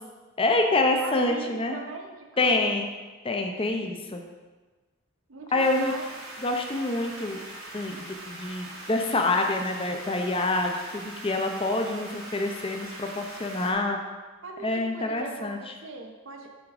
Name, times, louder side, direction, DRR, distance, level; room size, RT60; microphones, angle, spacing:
voice 1, 0.4-1.8 2.4-2.9 3.2-4.2 5.5-6.0 6.4-7.4 7.7-14.0 14.6-15.6, left 2 dB, 25° left, 4 dB, 0.7 m, -26 dB
voice 2, 1.0-2.8 5.3-6.0 14.4-16.5, right 3 dB, 70° right, 2 dB, 0.9 m, -40 dB
sound 1, 5.6-13.7, right 1 dB, 85° right, 1.7 m, -42 dB
8.6 x 3.7 x 4.9 m, 1.3 s
head